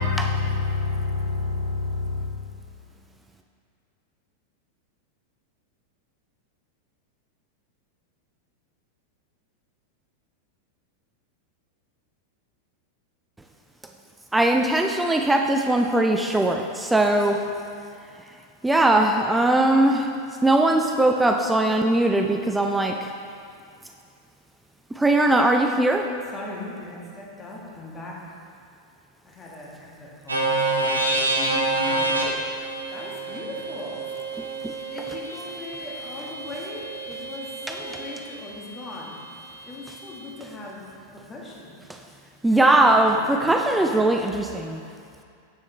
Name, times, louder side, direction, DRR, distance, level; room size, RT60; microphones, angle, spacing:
voice 1, 0.0-2.4, left 4 dB, 90° left, 1.7 m, -26 dB
voice 2, 14.3-17.4 18.6-20.1 20.4-22.9 25.0-26.1 42.4-44.8, right 1 dB, 5° right, 0.4 m, -20 dB
voice 3, 26.3-28.1 29.2-32.2 32.9-34.0 34.9-39.1 39.7-40.9 41.3-41.8 42.5-43.4 43.7-44.1, left 2 dB, 20° left, 1.4 m, -40 dB
sound 1, 30.3-38.2, right 2 dB, 80° right, 0.9 m, -27 dB
8.0 x 6.2 x 3.2 m
figure-of-eight pair, 90°, 0 cm